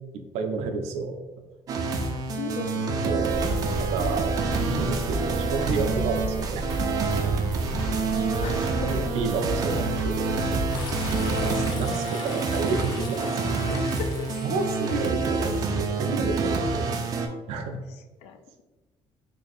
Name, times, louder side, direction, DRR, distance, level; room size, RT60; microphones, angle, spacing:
voice 1, 0.3-1.1 3.0-3.4 3.8-6.6 7.1-7.7 8.5-8.6 8.9-10.4 11.1-13.7 14.4-17.1 17.5-17.8, right 4 dB, 90° right, 5 dB, 0.5 m, -30 dB
sound 1, 1.7-17.3, right 4 dB, 35° right, 0.4 m, -28 dB
voice 2, 1.8-3.0 7.7-9.0 11.1-11.5 12.0-12.4 13.6-14.3 14.9-15.0 17.7-18.6, left 6 dB, 75° left, 5 dB, 0.5 m, -39 dB
sound 2, 3.3-11.6, right 1 dB, 55° right, 0.8 m, -32 dB
sound 3, 10.7-16.3, left 2 dB, 40° left, 0.8 m, -40 dB
3.3 x 2.7 x 3.9 m, 1.2 s
cardioid pair, 175°, 11 cm